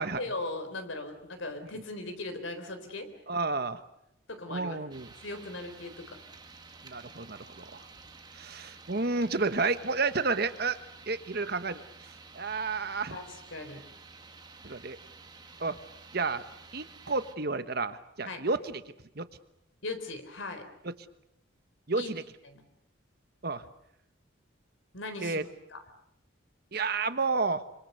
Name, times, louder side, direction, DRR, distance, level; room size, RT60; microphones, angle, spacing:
voice 1, 0.0-3.1 4.3-4.8 5.2-6.2 13.1-13.8 18.2-18.4 19.8-20.7 22.0-22.1 22.4-22.6 24.9-25.4 25.7-25.8, left 2 dB, 80° left, 8 dB, 4.0 m, -38 dB
voice 2, 3.3-3.8 4.5-5.1 6.8-7.8 8.3-10.8 11.1-13.2 14.6-15.0 15.6-15.8 16.1-16.4 16.7-18.8 19.2-19.3 21.9-22.2 23.4-23.6 25.2-25.4 26.7-27.6, right 3 dB, 55° right, 11 dB, 1.3 m, -31 dB
sound 1, 4.9-17.4, right 4 dB, 20° right, 1.7 m, -51 dB
25.5 x 25.5 x 6.8 m, 0.79 s
head